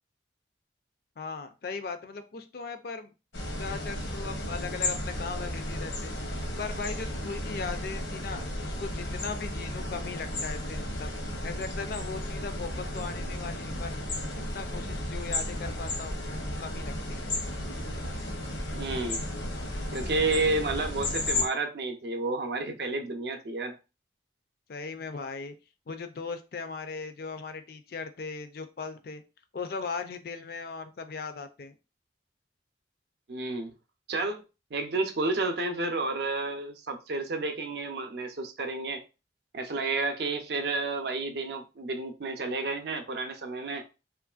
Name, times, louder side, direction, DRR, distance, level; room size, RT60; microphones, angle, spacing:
voice 1, 1.2-3.1 3.6-6.1 6.6-11.1 11.4-14.0 14.5-16.2 16.6-17.3 24.7-25.6 25.9-29.2 29.5-31.8, left 4 dB, 55° left, 0.4 m, -38 dB
sound 1, 3.3-21.5, left 1 dB, 80° left, 0.8 m, -34 dB
voice 2, 18.7-19.2 19.9-23.7 33.3-33.7 34.1-34.4 34.7-39.0 39.5-43.8, right 3 dB, 60° right, 0.5 m, -31 dB
3.0 x 2.5 x 2.3 m
head